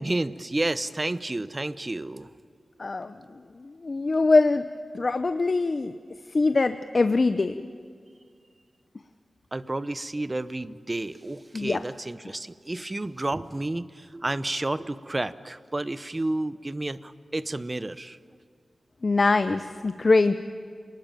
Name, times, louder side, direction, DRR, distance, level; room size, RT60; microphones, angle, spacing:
voice 1, 0.0-2.3 9.5-18.2, right 2 dB, 25° right, 14 dB, 0.8 m, -31 dB
voice 2, 2.8-3.1 3.8-4.7 4.9-5.9 6.3-7.7 11.5-11.8 19.0-20.4, left 3 dB, 45° left, 10 dB, 0.7 m, -22 dB
28.5 x 19.5 x 9.1 m, 2.1 s
wide cardioid pair, 100°, 0 cm